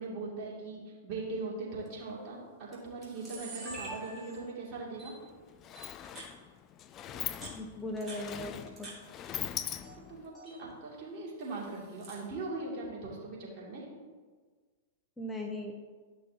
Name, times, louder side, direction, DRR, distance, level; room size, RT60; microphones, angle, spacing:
voice 1, 0.0-5.1 10.1-13.9, right 3 dB, 45° right, -4 dB, 2.7 m, -40 dB
Camera, 1.9-2.1 2.7-2.8 3.0-4.6 5.0-5.1 5.8-6.3 7.1-9.0 9.3-10.0 10.2-10.6 11.4-12.3, right 2 dB, 20° right, 2.7 m, -46 dB
Sliding door, 5.0-5.1 5.4-10.3, left 10 dB, 35° left, 0.4 m, -41 dB
voice 2, 7.6-8.5 8.8-8.9 15.2-15.7, left 1 dB, 10° left, 2 dB, 0.9 m, -38 dB
11.5 x 6.2 x 2.9 m, 1.5 s
hypercardioid pair, 105°, 0 cm